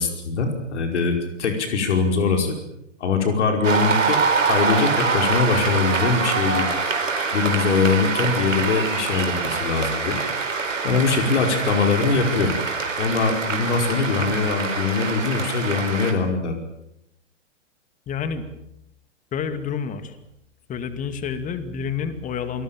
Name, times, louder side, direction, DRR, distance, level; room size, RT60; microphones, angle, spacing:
voice 1, 0.0-2.6 3.0-6.7 7.3-10.2 10.8-12.6 13.0-16.6, left 4 dB, 65° left, 4 dB, 5.2 m, -22 dB
Cheering / Applause, 3.6-16.1, right 4 dB, 90° right, 4.5 m, -25 dB
voice 2, 18.1-18.4 19.3-20.2 20.7-22.6, left 6 dB, 20° left, 10 dB, 2.4 m, -29 dB
28.0 x 19.5 x 7.3 m, 0.81 s
hypercardioid pair, 120°, 38 cm